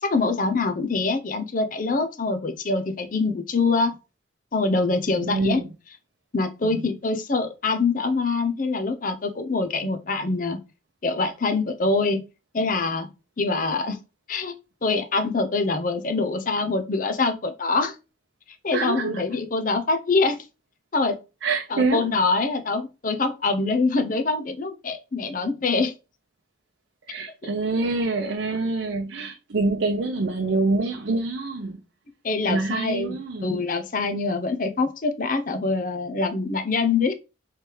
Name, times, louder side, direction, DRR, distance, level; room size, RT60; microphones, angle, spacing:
voice 1, 0.0-3.9 4.5-5.6 6.3-10.6 11.0-12.2 12.5-13.1 13.4-14.0 14.3-14.5 14.8-18.0 18.6-20.4 20.9-21.2 21.7-25.9 32.2-37.1, left 3 dB, 45° left, 0.6 m, -24 dB
voice 2, 5.1-5.7 6.6-6.8 18.7-19.2 21.4-22.0 27.1-31.8 32.5-33.6, right 3 dB, 80° right, 0.6 m, -26 dB
3.3 x 3.2 x 4.5 m
head